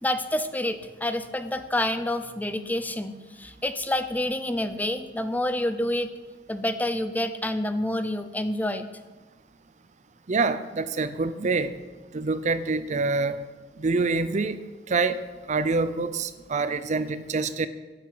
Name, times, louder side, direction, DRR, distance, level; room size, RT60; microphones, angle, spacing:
voice 1, 0.0-6.1 6.5-8.9, left 1 dB, 10° left, 10 dB, 0.6 m, -28 dB
voice 2, 10.3-11.7 12.1-13.4 13.8-14.6 14.9-15.2 15.5-17.7, right 3 dB, 40° right, 13 dB, 0.6 m, -26 dB
11.0 x 8.3 x 7.8 m, 1.3 s
head